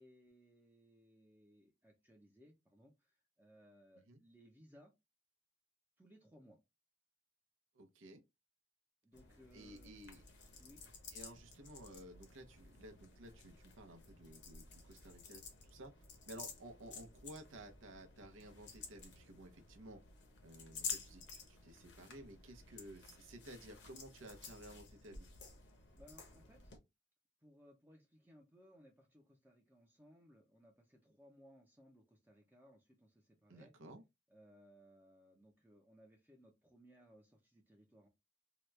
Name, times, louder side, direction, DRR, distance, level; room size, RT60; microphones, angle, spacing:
voice 1, 0.0-4.9 6.0-6.6 9.0-9.9 10.6-10.8 26.0-26.7 27.4-33.7 34.3-38.1, equal, 10° right, 0.5 m, -64 dB
voice 2, 7.7-8.2 9.5-10.2 11.1-15.9 16.3-20.0 20.4-25.3 33.5-34.0, right 1 dB, 85° right, 0.7 m, -55 dB
sound 1, 9.1-26.8, left 5 dB, 60° left, 0.8 m, -52 dB
2.8 x 2.3 x 3.1 m
head